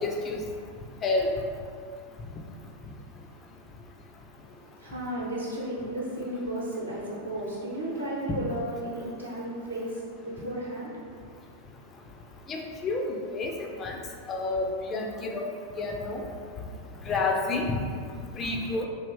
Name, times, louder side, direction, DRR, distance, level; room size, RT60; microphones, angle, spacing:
voice 1, 0.0-0.4 1.0-1.3 12.5-14.0 14.3-15.5 15.8-16.2 17.1-17.8 18.4-18.9, left 3 dB, 25° left, 1 dB, 0.4 m, -29 dB
voice 2, 4.5-11.3, right 1 dB, 80° right, -6 dB, 0.8 m, -34 dB
3.3 x 2.4 x 3.1 m, 2.2 s
figure-of-eight pair, 90°, 0 cm